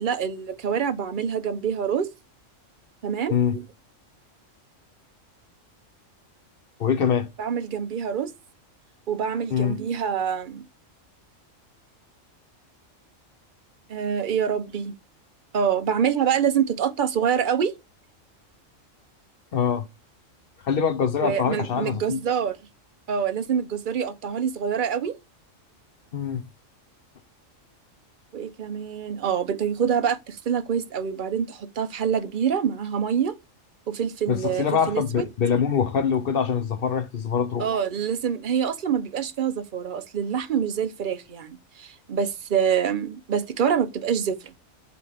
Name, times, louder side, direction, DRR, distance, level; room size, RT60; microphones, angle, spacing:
voice 1, 0.0-2.1 3.0-3.6 7.4-8.3 9.1-10.6 13.9-15.0 15.5-17.7 21.2-22.6 23.1-25.2 28.3-33.3 33.9-35.2 37.6-44.5, right 7 dB, 50° right, 0.7 m, -26 dB
voice 2, 6.8-7.3 9.5-9.8 19.5-19.9 20.6-22.2 26.1-26.5 34.3-37.7, left 7 dB, 55° left, 0.8 m, -24 dB
8.0 x 3.2 x 4.9 m
omnidirectional pair, 1.3 m